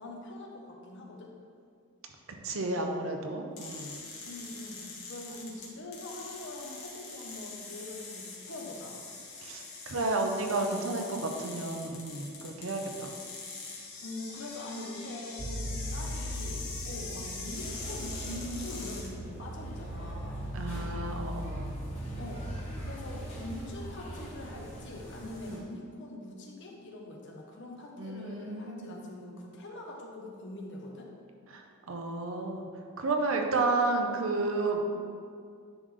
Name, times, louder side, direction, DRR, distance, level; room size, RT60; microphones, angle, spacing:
voice 1, 0.0-1.3 4.2-9.1 14.0-20.5 22.2-22.5 22.8-31.1, left 1 dB, 55° left, 0 dB, 1.0 m, -43 dB
voice 2, 2.4-4.0 9.4-13.1 20.5-21.7 25.4-25.6 28.0-29.0 31.5-31.6 31.9-32.7 33.0-34.8, right 3 dB, 70° right, 3 dB, 0.7 m, -32 dB
sound 1, 3.6-19.1, left 4 dB, 85° left, 1.4 m, -43 dB
sound 2, 15.4-25.6, equal, 25° right, 0.3 m, -39 dB
sound 3, 17.6-25.6, equal, 30° left, 1.5 m, -49 dB
10.0 x 3.4 x 3.8 m, 2.2 s
head